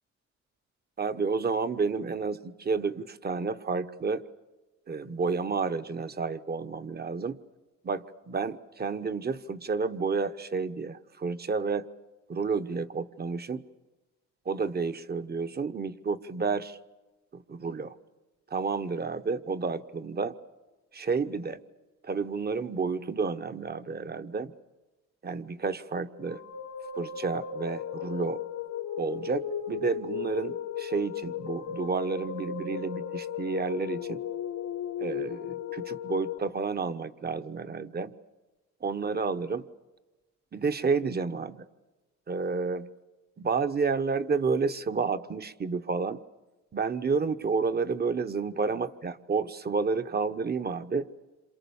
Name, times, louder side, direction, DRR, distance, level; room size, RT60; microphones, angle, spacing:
voice 1, 1.0-4.2 4.9-7.4 7.8-11.9 12.3-13.6 14.4-16.8 17.3-18.0 18.5-20.3 20.9-21.6 22.0-24.5 25.2-26.4 26.9-28.4 29.0-34.2 35.0-38.1 38.8-39.7 40.5-41.6 42.3-42.9 43.4-46.2 46.7-51.1, right 4 dB, 30° right, 11 dB, 1.1 m, -30 dB
sound 1, 26.1-36.4, left 8 dB, 80° left, 1.5 m, -36 dB
27.5 x 27.0 x 7.1 m, 1.2 s
cardioid pair, 90°, 30 cm